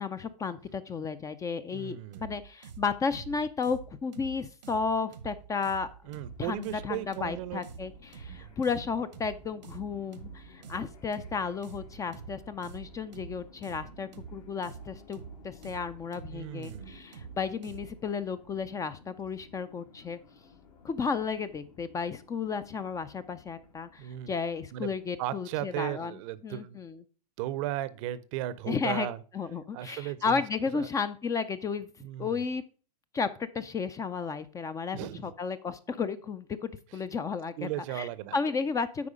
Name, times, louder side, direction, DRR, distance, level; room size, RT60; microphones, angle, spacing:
voice 1, 0.0-5.9 6.4-20.2 20.8-27.0 28.7-29.1 29.3-31.9 32.2-32.6 33.1-39.1, left 5 dB, 15° left, 13 dB, 0.4 m, -33 dB
voice 2, 1.7-2.3 6.1-7.6 8.3-8.5 16.3-17.0 24.0-24.3 24.7-24.9 25.2-26.8 27.4-29.2 29.7-30.4 30.7-30.9 32.0-32.4 34.9-35.3 37.6-38.4, right 13 dB, 50° right, 17 dB, 0.6 m, -36 dB
sound 1, 2.1-18.0, right 7 dB, 85° right, 1.1 m, -47 dB
sound 2, 6.0-25.2, left 4 dB, 65° left, 2.2 m, -56 dB
8.4 x 4.8 x 4.9 m, 0.39 s
hypercardioid pair, 115°, 21 cm